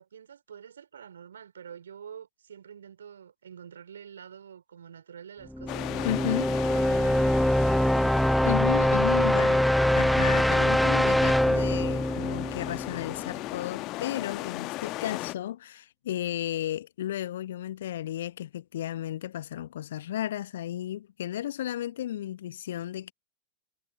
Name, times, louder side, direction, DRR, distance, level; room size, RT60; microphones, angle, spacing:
voice 1, 0.0-7.5 9.1-9.5, right 8 dB, 65° right, 4.7 m, -46 dB
sound 1, 5.5-13.3, equal, ahead, 0.4 m, -24 dB
sound 2, 5.7-15.3, left 19 dB, 40° left, 1.1 m, -37 dB
voice 2, 6.0-6.5 8.4-9.6 9.9-23.1, left 12 dB, 60° left, 0.8 m, -33 dB
figure-of-eight pair, 90°, 0 cm